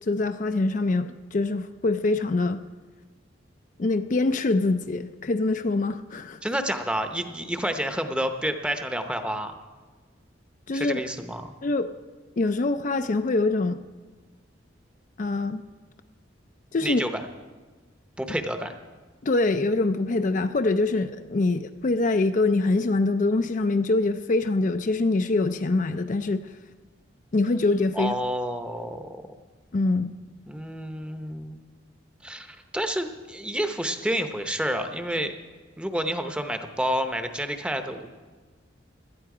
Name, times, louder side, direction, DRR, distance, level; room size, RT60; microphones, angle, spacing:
voice 1, 0.0-2.6 3.8-6.4 10.7-11.0 11.6-11.9 12.4-13.8 15.2-15.6 16.7-17.0 19.2-26.5 27.3-28.2 29.7-30.1, left 2 dB, 40° left, 8 dB, 0.4 m, -24 dB
voice 2, 6.4-9.6 10.7-11.5 16.8-17.2 18.2-18.7 27.9-29.2 30.5-31.6 32.2-35.3 35.8-38.1, equal, 5° right, 7 dB, 0.8 m, -29 dB
17.5 x 12.5 x 4.9 m, 1.4 s
head